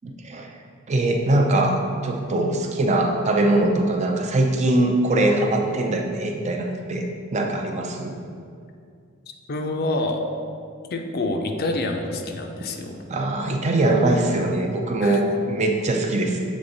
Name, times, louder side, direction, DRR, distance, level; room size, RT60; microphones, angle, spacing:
voice 1, 0.0-0.5 0.9-7.1 7.3-8.1 13.1-16.4, right 2 dB, 35° right, 3 dB, 0.5 m, -22 dB
voice 2, 9.5-10.2 10.9-13.0 15.0-15.2, left 2 dB, 50° left, 4 dB, 0.5 m, -27 dB
7.2 x 3.5 x 3.9 m, 2.3 s
head